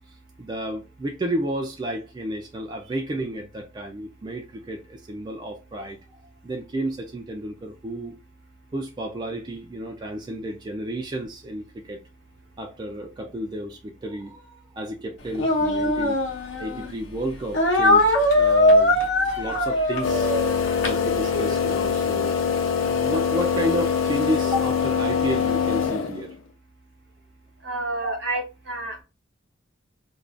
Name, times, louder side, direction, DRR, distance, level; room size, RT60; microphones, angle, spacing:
voice 1, 0.4-6.0 6.4-8.2 8.7-12.0 12.6-22.5 22.8-26.4 28.0-28.2, right 1 dB, 25° right, 0.3 m, -31 dB
Speech, 15.3-16.9 17.5-21.6, left 1 dB, 65° left, 0.8 m, -21 dB
sound 1, 20.0-26.4, left 6 dB, 85° left, 0.5 m, -24 dB
voice 2, 27.6-29.0, right 2 dB, 65° right, 1.0 m, -30 dB
2.5 x 2.3 x 3.3 m
head